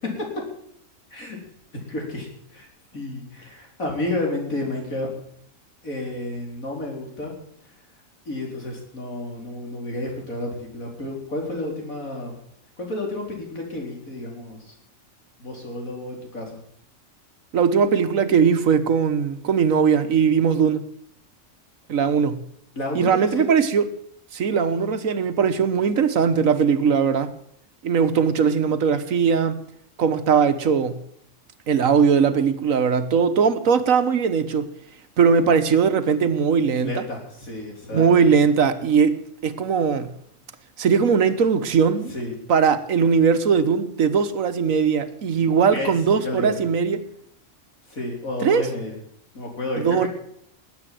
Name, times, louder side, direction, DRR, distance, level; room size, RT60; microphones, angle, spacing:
voice 1, 1.9-2.7 2.9-5.1 5.8-7.3 8.3-12.3 12.8-14.7 15.4-16.6 22.8-23.5 36.8-38.4 42.1-42.3 45.7-46.5 47.9-49.0 49.3-50.1, left 2 dB, 85° left, 4.8 m, -31 dB
voice 2, 17.5-20.8 21.9-22.4 22.9-23.9 24.3-27.3 27.8-29.6 30.0-31.0 31.7-34.7 35.2-37.0 37.9-40.1 40.8-42.1 42.5-47.1 48.4-48.7 49.8-50.1, right 6 dB, 75° right, 1.5 m, -20 dB
19.5 x 8.8 x 7.7 m
omnidirectional pair, 1.4 m